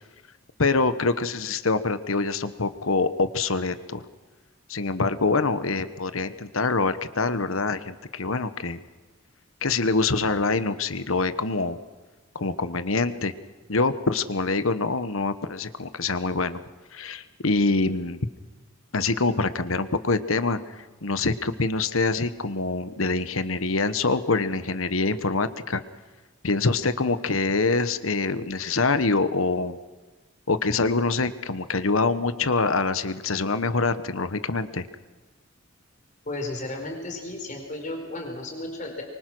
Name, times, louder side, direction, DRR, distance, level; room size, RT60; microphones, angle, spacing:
voice 1, 0.6-4.1 4.7-8.8 9.6-11.8 12.3-13.3 13.7-16.6 16.9-18.2 18.9-25.8 26.4-29.8 30.5-34.9, left 3 dB, 75° left, 12 dB, 1.2 m, -25 dB
voice 2, 36.2-39.0, left 2 dB, 35° left, 2 dB, 4.7 m, -34 dB
24.5 x 24.5 x 6.2 m, 1.3 s
head